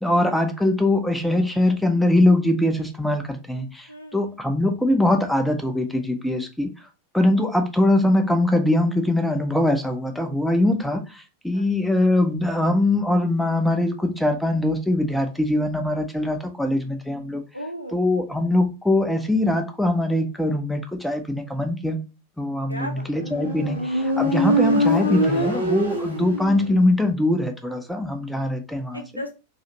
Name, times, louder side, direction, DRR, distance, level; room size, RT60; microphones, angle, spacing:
voice 1, 0.0-3.9 4.1-6.7 7.1-11.0 11.4-17.4 17.9-22.0 22.4-29.0, left 1 dB, ahead, 0.6 m, -22 dB
voice 2, 3.9-4.3 11.5-11.7 17.5-18.0 22.7-23.1 28.9-29.3, equal, 90° left, 0.6 m, -35 dB
Motorcycle, 23.2-26.9, equal, 85° right, 1.1 m, -23 dB
3.9 x 2.4 x 2.8 m
figure-of-eight pair, 90°, 0 cm